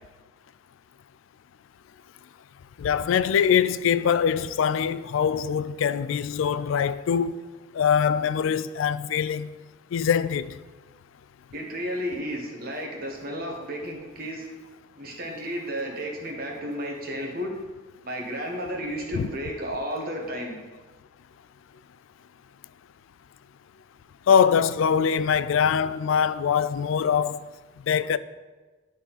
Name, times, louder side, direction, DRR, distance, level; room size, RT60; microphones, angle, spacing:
voice 1, 2.8-7.4 7.7-9.5 9.9-10.5 19.1-19.3 24.3-27.4 27.9-28.2, left 7 dB, 70° left, 0.3 m, -23 dB
voice 2, 11.5-14.5 14.9-17.5 18.0-20.6, equal, 45° right, 1.4 m, -32 dB
12.0 x 4.0 x 4.1 m
head